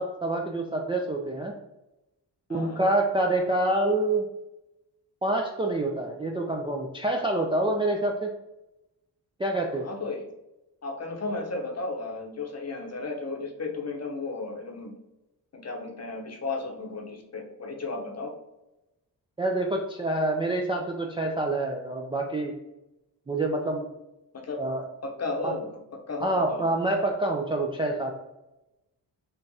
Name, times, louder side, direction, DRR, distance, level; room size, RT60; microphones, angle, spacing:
voice 1, 0.0-1.5 2.5-4.3 5.2-8.3 9.4-9.9 19.4-22.5 23.3-23.9 24.6-24.8 25.4-25.6 26.2-28.1, right 2 dB, 15° right, 0 dB, 0.3 m, -27 dB
voice 2, 2.5-2.8 9.8-10.2 10.8-14.9 15.5-18.3 24.4-25.7 26.1-26.6, left 3 dB, 35° left, 2 dB, 0.8 m, -34 dB
3.7 x 2.5 x 2.7 m, 0.95 s
supercardioid pair, 50°, 43 cm